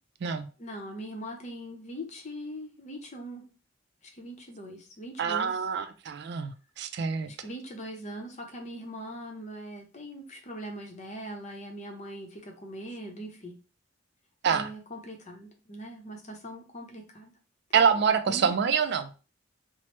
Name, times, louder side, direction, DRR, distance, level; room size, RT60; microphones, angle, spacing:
voice 1, 0.6-3.4 4.0-5.6 7.2-13.6 14.5-17.3 18.3-18.6, equal, 40° left, 3 dB, 0.7 m, -41 dB
voice 2, 5.2-7.3 14.4-14.7 17.7-19.1, right 6 dB, 60° right, 10 dB, 0.3 m, -26 dB
3.1 x 2.0 x 3.0 m, 0.34 s
head